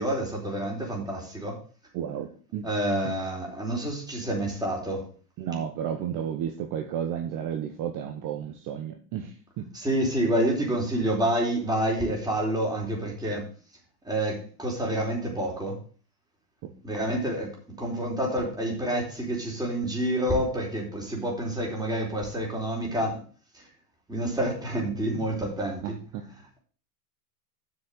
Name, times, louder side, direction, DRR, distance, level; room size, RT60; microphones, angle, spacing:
voice 1, 0.0-1.6 2.6-5.1 9.7-13.5 14.0-15.8 16.8-23.2 23.5-23.6 24.1-25.9, right 1 dB, 10° right, -1 dB, 4.2 m, -28 dB
voice 2, 1.9-2.7 3.0-3.1 5.4-9.7 16.6-16.7 25.8-26.2, right 9 dB, 40° right, 5 dB, 1.3 m, -32 dB
7.6 x 6.4 x 7.2 m, 0.41 s
hypercardioid pair, 115°, 48 cm